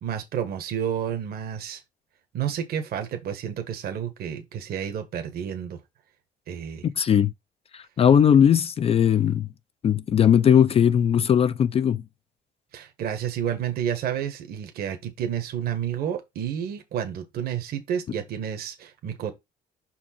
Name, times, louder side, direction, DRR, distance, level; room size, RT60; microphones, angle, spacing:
voice 1, 0.0-1.8 2.3-5.8 6.5-6.9 12.7-19.3, right 9 dB, 65° right, 1.3 m, -30 dB
voice 2, 6.8-7.3 7.7-9.5 9.8-12.0, left 8 dB, 35° left, 0.4 m, -19 dB
5.5 x 4.4 x 4.3 m
cardioid pair, 110°, 17 cm